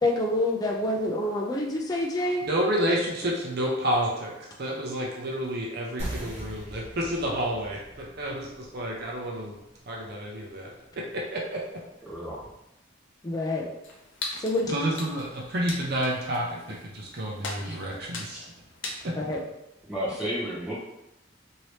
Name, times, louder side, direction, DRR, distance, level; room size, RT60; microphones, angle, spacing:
voice 1, 0.0-2.4 13.2-13.7 14.4-14.7 19.2-19.4, left 1 dB, 20° left, -1 dB, 0.4 m, -27 dB
voice 2, 2.4-9.5 9.9-10.7 11.3-11.6 14.7-18.4 19.0-19.1, right 1 dB, 50° right, -2 dB, 0.6 m, -30 dB
sound 1, 6.0-11.1, right 1 dB, 35° right, 1.0 m, -41 dB
voice 3, 12.0-12.5 17.6-17.8 18.3-18.5 19.9-20.7, equal, 5° right, -9 dB, 1.1 m, -32 dB
sound 2, 13.8-19.1, left 3 dB, 65° left, 0.6 m, -40 dB
2.9 x 2.7 x 3.1 m, 0.90 s
head